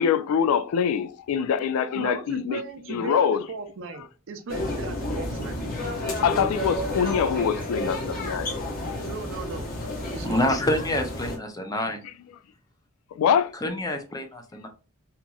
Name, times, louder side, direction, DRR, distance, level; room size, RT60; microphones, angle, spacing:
voice 1, 0.0-2.6 2.9-3.4 6.2-8.6 13.2-13.5, left 7 dB, 80° left, 0.3 m, -24 dB
voice 2, 1.9-5.6 9.0-9.7 10.1-10.5, right 4 dB, 60° right, 0.5 m, -37 dB
sound 1, 4.5-11.4, left 1 dB, 40° left, 0.9 m, -31 dB
voice 3, 10.2-12.1 13.5-14.7, left 1 dB, 15° left, 0.5 m, -27 dB
2.9 x 2.5 x 2.3 m
head